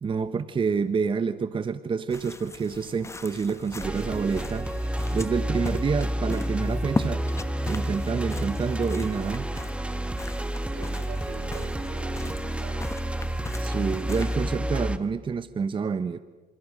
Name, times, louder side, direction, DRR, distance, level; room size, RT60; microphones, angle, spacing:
voice 1, 0.0-4.7 5.1-7.2 7.7-9.5 13.6-16.2, right 5 dB, 30° right, 1.0 m, -28 dB
sound 1, 2.1-14.9, left 3 dB, 15° left, 1.4 m, -38 dB
sound 2, 3.8-15.0, right 1 dB, 5° right, 1.5 m, -30 dB
voice 2, 10.7-13.0, right 10 dB, 75° right, 1.9 m, -46 dB
30.0 x 27.0 x 6.5 m
cardioid pair, 110°, 17 cm